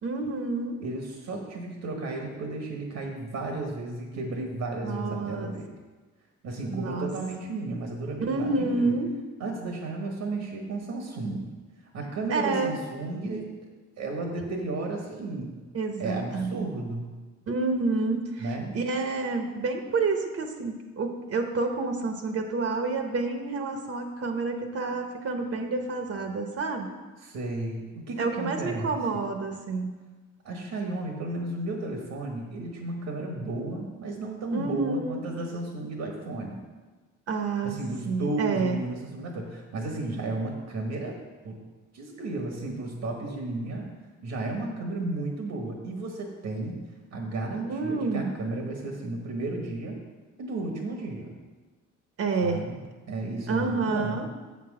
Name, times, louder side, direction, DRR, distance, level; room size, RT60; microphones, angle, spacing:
voice 1, 0.0-0.8 4.8-5.7 6.7-7.1 8.2-9.1 12.3-12.7 15.7-16.7 17.5-27.0 28.2-30.0 34.5-35.2 37.3-37.8 38.0-38.8 47.6-48.4 52.2-52.6 53.5-54.3, right 3 dB, 50° right, 5 dB, 0.9 m, -29 dB
voice 2, 0.8-5.7 6.4-8.9 9.4-11.4 11.9-13.5 14.0-15.5 16.0-17.1 18.4-18.8 27.2-28.9 30.4-36.6 37.6-41.2 41.4-41.5 41.9-43.9 44.2-46.8 47.1-50.0 50.4-51.3 52.4-52.8 53.1-54.2, right 2 dB, 75° right, 2 dB, 1.4 m, -33 dB
6.9 x 6.1 x 4.9 m, 1.3 s
cardioid pair, 90°, 30 cm